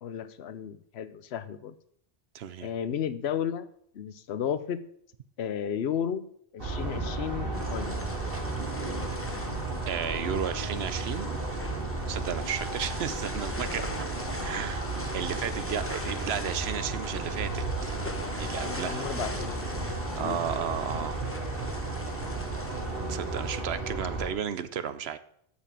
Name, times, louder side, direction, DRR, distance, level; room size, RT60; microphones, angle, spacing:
voice 1, 0.0-1.7 2.6-3.7 3.9-4.8 5.4-6.3 6.5-7.9 18.6-20.4, left 8 dB, 85° left, 14 dB, 1.0 m, -33 dB
voice 2, 2.3-2.7 9.9-11.3 12.1-14.1 14.4-14.9 15.1-17.6 18.4-19.1 19.8-21.3 23.1-25.2, right 8 dB, 80° right, 13 dB, 1.0 m, -33 dB
sound 1, 6.6-24.3, right 2 dB, 65° right, 2.7 m, -33 dB
sound 2, 7.5-23.6, left 1 dB, 15° left, 0.9 m, -42 dB
8.4 x 7.2 x 7.5 m, 0.67 s
omnidirectional pair, 1.1 m